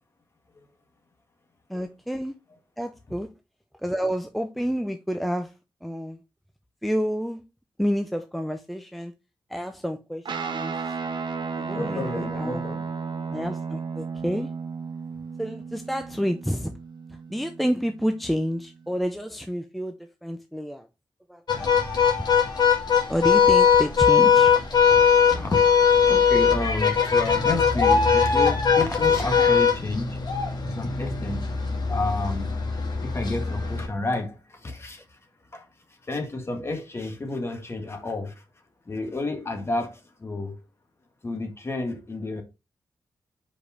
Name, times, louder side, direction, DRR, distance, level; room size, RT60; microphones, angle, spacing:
voice 1, 1.7-2.3 2.8-3.3 3.8-5.5 5.8-6.2 6.8-7.4 7.8-9.1 9.5-10.8 11.6-12.6 13.3-14.5 15.4-16.7 17.3-20.8 21.3-21.4 23.1-24.5, equal, ahead, 0.5 m, -29 dB
Guitar, 10.2-19.0, right 5 dB, 70° right, 1.0 m, -34 dB
voice 2, 11.7-12.9 24.9-25.6 26.0-30.3 30.6-31.6 31.9-32.6 33.0-35.2 35.5-38.4 38.8-40.6 41.2-42.4, left 2 dB, 30° left, 1.7 m, -31 dB
sound 1, 21.5-33.9, left 6 dB, 60° left, 2.0 m, -20 dB
5.0 x 5.0 x 4.1 m
wide cardioid pair, 140°, 8 cm